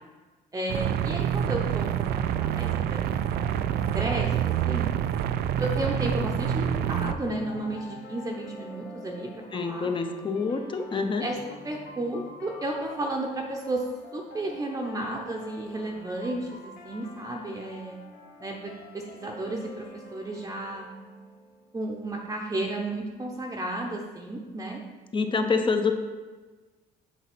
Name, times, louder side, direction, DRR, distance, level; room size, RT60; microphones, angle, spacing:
voice 1, 0.5-4.9 5.6-9.9 11.2-11.4 11.6-13.8 14.1-18.0 18.4-20.9 21.7-24.8, right 2 dB, 20° right, 0 dB, 0.8 m, -33 dB
sound 1, 0.7-7.1, right 10 dB, 70° right, 0.4 m, -27 dB
sound 2, 3.1-22.1, left 2 dB, 55° left, 1.5 m, -46 dB
voice 2, 9.5-11.3 25.1-25.9, left 4 dB, 30° left, 6 dB, 0.8 m, -26 dB
7.1 x 4.1 x 6.0 m, 1.3 s
cardioid pair, 110°, 17 cm